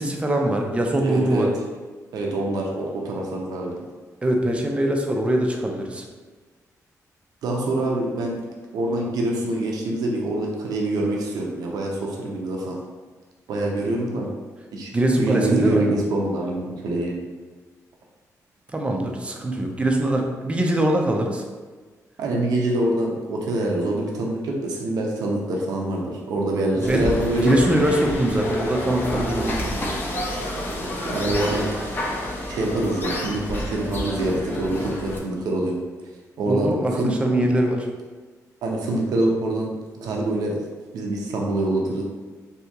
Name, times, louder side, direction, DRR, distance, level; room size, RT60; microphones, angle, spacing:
voice 1, 0.0-1.5 4.2-6.0 14.9-15.8 18.7-21.4 26.8-27.1 27.4-29.5 36.5-37.9, right 1 dB, 20° right, 2 dB, 0.5 m, -22 dB
voice 2, 1.0-1.5 2.1-3.8 7.4-8.4 8.7-12.8 13.5-14.3 14.7-14.9 15.2-17.1 22.2-27.6 29.1-29.8 31.0-31.7 32.5-35.8 36.4-37.1 38.6-39.7 40.0-40.6 40.9-42.0, right 1 dB, 85° right, -1 dB, 0.6 m, -25 dB
sound 1, 26.8-35.2, left 1 dB, 35° left, 0.6 m, -29 dB
2.8 x 2.7 x 3.4 m, 1.4 s
cardioid pair, 115°, 6 cm